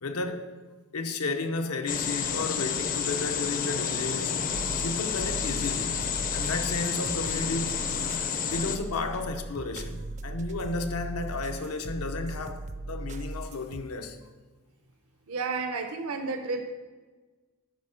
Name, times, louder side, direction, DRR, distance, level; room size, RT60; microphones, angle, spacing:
voice 1, 0.0-0.5 0.9-4.4 4.8-6.0 6.3-7.8 8.5-14.2, left 3 dB, 85° left, 0.8 m, -33 dB
sound 1, 1.9-8.8, left 7 dB, 40° left, 0.5 m, -30 dB
sound 2, 4.5-13.8, right 2 dB, 35° right, 0.4 m, -38 dB
voice 2, 15.3-16.6, right 4 dB, 75° right, 0.7 m, -31 dB
10.5 x 4.3 x 5.6 m
head